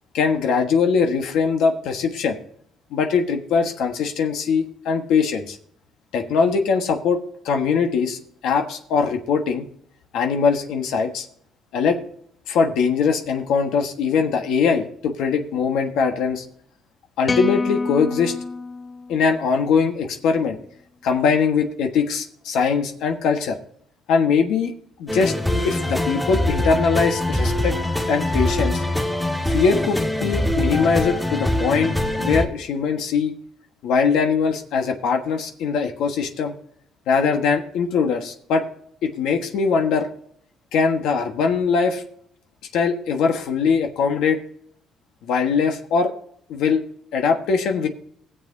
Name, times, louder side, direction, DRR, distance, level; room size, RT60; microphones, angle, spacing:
voice 1, 0.1-2.4 2.9-5.6 6.1-7.2 7.4-9.6 10.1-11.3 11.7-12.0 12.5-16.4 17.2-18.3 19.1-20.6 21.0-23.6 24.1-24.7 25.0-25.3 25.6-27.7 28.1-28.8 29.5-33.3 33.8-36.5 37.1-38.7 39.0-40.1 40.7-42.0 42.7-44.4 45.2-46.1 46.5-46.8 47.1-47.9, left 5 dB, 80° left, 4 dB, 1.3 m, -21 dB
sound 1, 17.2-19.6, left 3 dB, 25° left, 0.4 m, -27 dB
sound 2, 25.1-32.5, left 1 dB, 5° left, 1.8 m, -23 dB
20.0 x 7.4 x 2.7 m, 0.64 s
cardioid pair, 125°, 0 cm